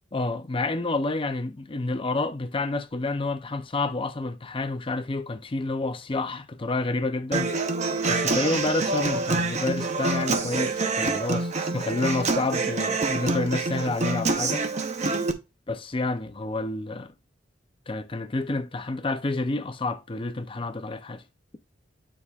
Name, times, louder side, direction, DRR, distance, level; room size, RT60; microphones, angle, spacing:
voice 1, 0.1-7.5 8.1-14.7 15.7-17.1 17.9-21.2, left 2 dB, 30° left, 0.5 m, -29 dB
Human voice / Acoustic guitar, 7.3-15.3, right 3 dB, 40° right, 0.8 m, -26 dB
9.6 x 4.8 x 2.4 m
head